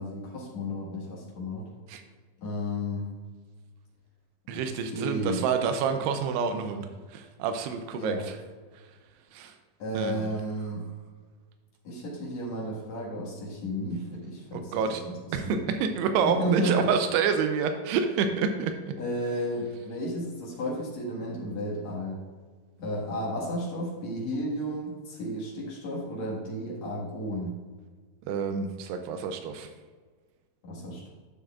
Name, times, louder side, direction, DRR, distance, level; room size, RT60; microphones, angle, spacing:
voice 1, 0.0-1.7 2.4-3.1 4.5-4.6 4.9-5.4 7.9-8.2 9.8-10.9 11.8-15.1 15.4-15.7 16.4-16.8 19.0-22.2 22.8-27.5 30.6-31.1, equal, 55° left, -4 dB, 2.4 m, -33 dB
voice 2, 4.5-8.4 8.7-9.0 9.3-9.6 9.9-10.3 14.5-15.1 15.3-18.9 28.2-29.7, right 6 dB, 90° right, 7 dB, 2.7 m, -28 dB
12.0 x 6.8 x 2.4 m, 1.5 s
omnidirectional pair, 4.7 m